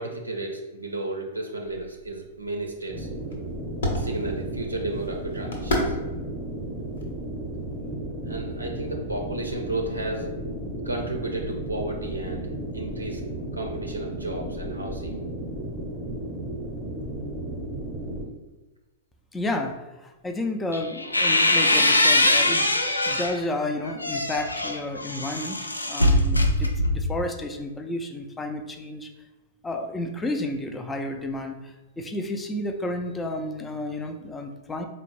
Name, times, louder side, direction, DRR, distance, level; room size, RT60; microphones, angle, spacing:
voice 1, 0.0-3.1 3.9-6.0 8.2-10.3 10.8-12.5 12.7-13.2 13.5-15.2, right 2 dB, 90° right, 2 dB, 0.4 m, -33 dB
sound 1, 1.6-7.9, left 1 dB, 70° left, 0.8 m, -34 dB
sound 2, 2.9-18.2, right 1 dB, 5° right, 0.7 m, -34 dB
voice 2, 19.3-29.1 29.6-34.9, left 1 dB, 10° left, 5 dB, 0.3 m, -31 dB
sound 3, 20.7-23.4 23.8-27.2, left 1 dB, 90° left, 0.3 m, -22 dB
4.1 x 2.0 x 3.1 m, 1.1 s
figure-of-eight pair, 105°, 0 cm